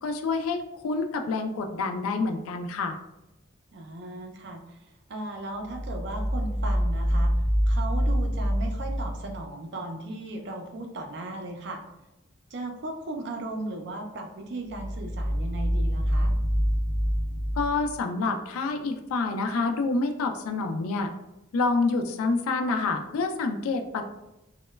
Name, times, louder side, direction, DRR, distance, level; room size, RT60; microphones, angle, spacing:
voice 1, 0.0-3.0 17.6-21.1 21.5-24.0, left 3 dB, 90° left, 6 dB, 0.3 m, -27 dB
voice 2, 3.7-11.8 12.5-16.3, right 2 dB, 55° right, 3 dB, 0.4 m, -37 dB
sound 1, 5.7-9.5 14.7-18.8, equal, 30° left, 1.3 m, -26 dB
2.9 x 2.1 x 2.2 m, 0.93 s
head